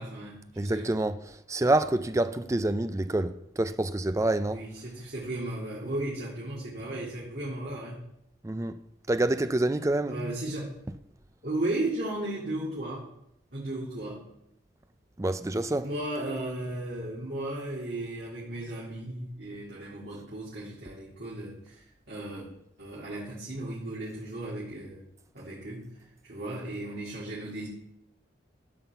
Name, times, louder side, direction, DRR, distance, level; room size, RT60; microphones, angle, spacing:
voice 1, 0.0-0.9 4.5-8.0 10.1-10.7 11.4-13.1 13.5-14.3 15.8-22.5 22.8-25.0 25.3-25.9 26.2-27.7, right 1 dB, 55° right, 2.1 m, -35 dB
voice 2, 0.6-4.6 8.4-8.8 9.1-10.1 15.2-15.9, right 2 dB, 15° right, 0.4 m, -27 dB
11.0 x 4.0 x 6.9 m
head